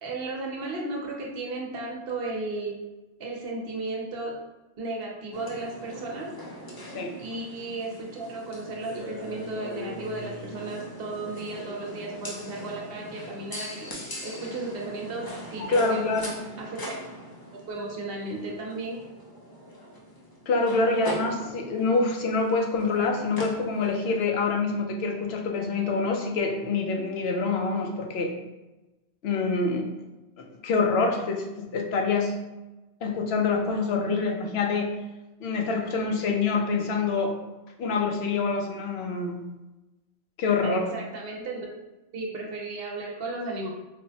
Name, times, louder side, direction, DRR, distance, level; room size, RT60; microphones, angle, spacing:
voice 1, 0.0-2.8 3.2-4.4 4.8-6.3 7.2-16.1 16.6-17.0 17.7-19.0 40.6-41.7 42.1-43.7, right 2 dB, 65° right, -1 dB, 0.9 m, -34 dB
sound 1, 5.3-24.2, equal, 30° left, 0.4 m, -41 dB
voice 2, 15.7-16.3 20.5-28.4 29.2-29.9 30.6-32.3 33.0-34.9 35.4-37.4 37.8-39.4 40.4-40.9, left 4 dB, 75° left, 2 dB, 0.8 m, -26 dB
4.3 x 2.1 x 2.7 m, 1.1 s
omnidirectional pair, 1.1 m